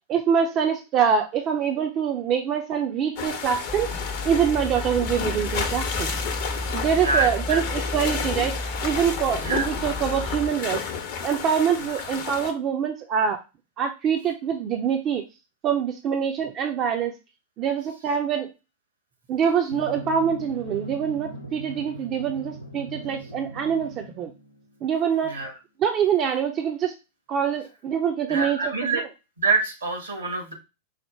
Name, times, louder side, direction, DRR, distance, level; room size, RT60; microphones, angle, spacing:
voice 1, 0.1-3.9 4.2-6.2 6.7-8.6 8.8-10.8 11.2-13.4 13.8-15.2 15.6-17.1 17.6-18.5 19.3-24.3 24.8-25.3 25.8-26.9 27.3-28.7, right 7 dB, 35° right, 4 dB, 0.6 m, -24 dB
sound 1, 3.2-12.5, left 6 dB, 50° left, 0.8 m, -31 dB
sound 2, 3.7-10.5, left 2 dB, 20° left, 0.6 m, -33 dB
voice 2, 7.0-7.6 9.3-9.7 25.2-25.5 28.3-29.0 29.4-30.5, right 3 dB, 75° right, 3 dB, 1.5 m, -26 dB
Drum, 19.7-24.8, right 1 dB, 85° left, 0.7 m, -40 dB
4.9 x 2.1 x 4.3 m, 0.27 s
figure-of-eight pair, 90°, 0 cm